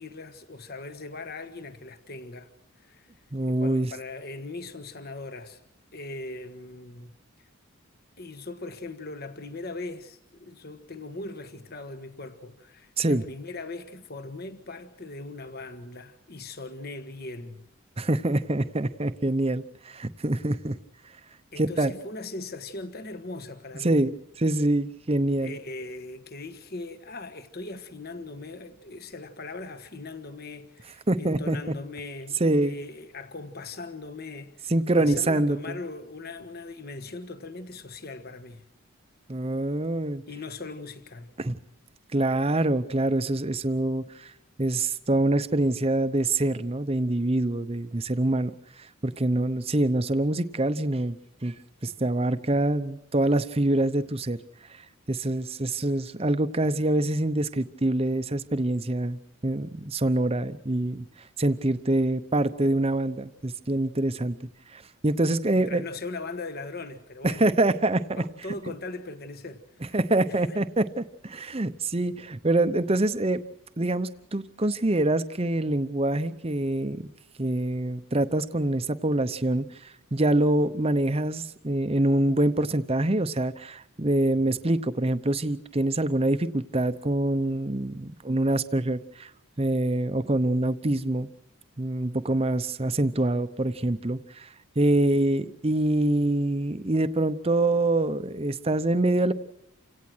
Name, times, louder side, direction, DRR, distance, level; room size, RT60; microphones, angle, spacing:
voice 1, 0.0-2.5 2.8-3.1 3.5-5.6 5.9-7.5 8.2-17.7 21.5-24.0 25.4-34.7 35.0-38.7 40.3-41.3 65.5-67.5 68.2-70.0 70.3-70.6, left 3 dB, 45° left, 1.4 m, -40 dB
voice 2, 3.3-3.9 13.0-13.2 18.0-20.7 21.6-21.9 23.8-25.5 31.1-31.6 32.4-32.7 34.7-35.8 39.3-40.2 41.4-41.5 42.1-44.3 44.6-48.5 49.0-51.2 51.4-51.5 51.8-54.4 55.1-59.2 59.4-61.1 61.4-64.4 64.7-65.8 67.2-68.0 69.9-73.4 73.8-77.0 77.4-79.7 80.1-89.3 89.6-91.3 91.8-94.5 94.8-99.3, right 1 dB, 25° right, 0.8 m, -25 dB
29.0 x 17.0 x 6.2 m
head